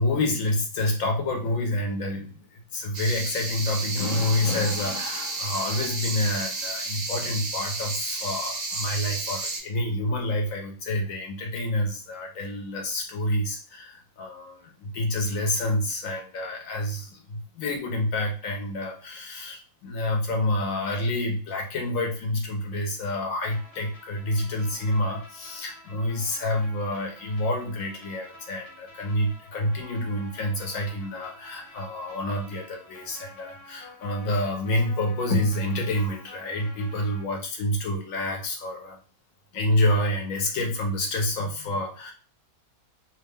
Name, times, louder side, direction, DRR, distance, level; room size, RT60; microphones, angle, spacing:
voice 1, 0.0-39.0 39.5-42.1, left 1 dB, 70° left, 1 dB, 0.9 m, -28 dB
sound 1, 2.9-9.6, right 3 dB, 50° right, 0.5 m, -32 dB
sound 2, 23.5-37.2, left 1 dB, 50° left, 0.9 m, -49 dB
2.6 x 2.3 x 3.5 m, 0.39 s
omnidirectional pair, 1.6 m